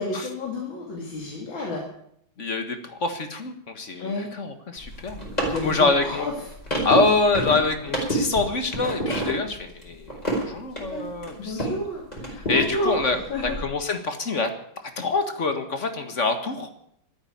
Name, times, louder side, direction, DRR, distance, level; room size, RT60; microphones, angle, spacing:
voice 1, 0.0-1.9 4.0-4.3 5.5-6.5 11.4-13.0 13.3-13.6, left 1 dB, 80° left, -1 dB, 3.1 m, -30 dB
voice 2, 2.4-5.2 5.6-6.3 6.8-11.7 12.5-14.5 14.8-16.7, left 3 dB, 40° left, 7 dB, 1.8 m, -25 dB
sound 1, 4.8-11.8 12.1-13.6, right 1 dB, 20° left, 4.9 m, -29 dB
13.0 x 9.9 x 9.7 m, 0.72 s
omnidirectional pair, 2.1 m